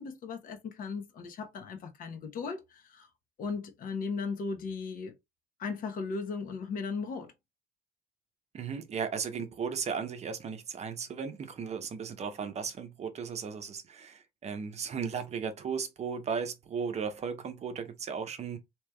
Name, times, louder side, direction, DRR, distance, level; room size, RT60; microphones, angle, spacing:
voice 1, 0.0-3.1 3.4-5.1 5.6-7.3, left 4 dB, 55° left, 0.9 m, -37 dB
voice 2, 8.5-18.6, right 6 dB, 40° right, 0.7 m, -36 dB
3.3 x 2.9 x 2.2 m
cardioid pair, 110°, 17 cm